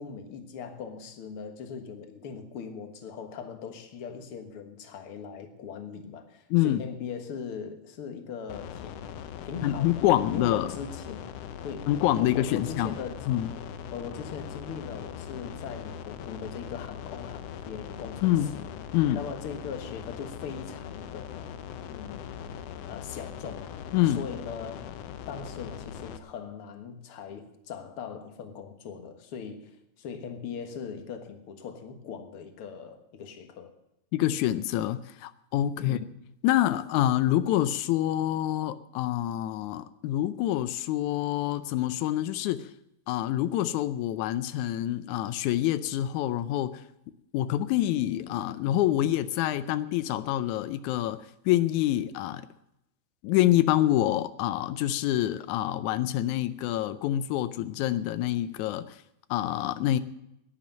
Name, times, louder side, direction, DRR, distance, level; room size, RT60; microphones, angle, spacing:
voice 1, 0.0-9.0 9.4-11.2 11.6-11.9 12.2-13.3 13.9-18.7 19.1-21.6 21.9-22.4 22.8-23.8 24.0-24.9 25.3-29.7 30.0-33.7 35.8-36.0, left 6 dB, 55° left, 6 dB, 2.2 m, -40 dB
voice 2, 6.5-6.8 9.6-10.7 11.9-13.0 13.3-13.5 18.2-18.6 18.9-19.2 23.9-24.2 34.1-36.0 36.4-42.7 43.1-46.8 47.3-51.2 51.5-52.5 53.2-59.0 59.3-60.0, left 13 dB, 90° left, 13 dB, 2.1 m, -26 dB
sound 1, 8.5-26.2, left 8 dB, 70° left, 1.7 m, -41 dB
11.5 x 10.5 x 9.1 m, 0.82 s
omnidirectional pair, 3.3 m